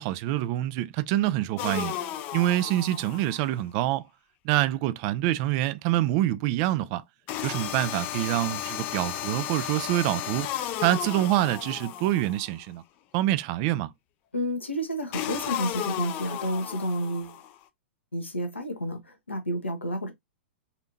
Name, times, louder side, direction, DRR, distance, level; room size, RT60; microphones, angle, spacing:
voice 1, 0.0-1.9 2.3-4.0 4.4-7.0 7.4-12.8 13.1-13.9, right 14 dB, 35° right, 0.3 m, -26 dB
sound 1, 1.6-3.5 7.3-12.6 15.1-17.5, left 11 dB, 30° left, 0.5 m, -34 dB
voice 2, 14.3-17.4 18.1-20.1, equal, 80° left, 1.1 m, -30 dB
4.1 x 2.7 x 2.6 m
figure-of-eight pair, 105°, 6 cm